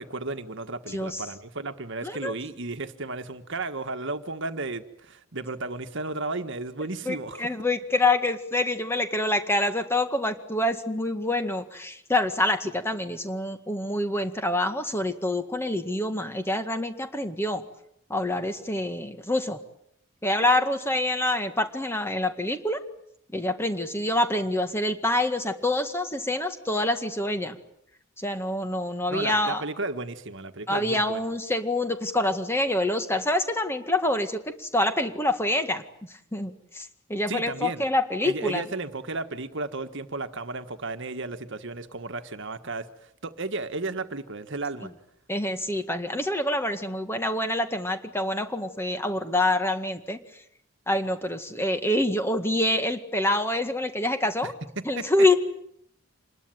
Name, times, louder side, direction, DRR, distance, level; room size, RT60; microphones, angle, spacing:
voice 1, 0.0-7.5 29.1-31.2 37.3-37.8 38.2-42.9 43.2-44.9 54.4-55.0, right 3 dB, 55° right, 9 dB, 1.6 m, -34 dB
voice 2, 2.0-2.3 7.1-17.6 18.1-19.6 20.2-22.8 23.3-27.6 28.2-29.6 30.7-35.8 36.3-38.6 45.3-50.2 50.9-54.5 54.9-55.3, left 1 dB, 10° left, 7 dB, 1.9 m, -26 dB
26.5 x 21.0 x 9.2 m, 0.71 s
head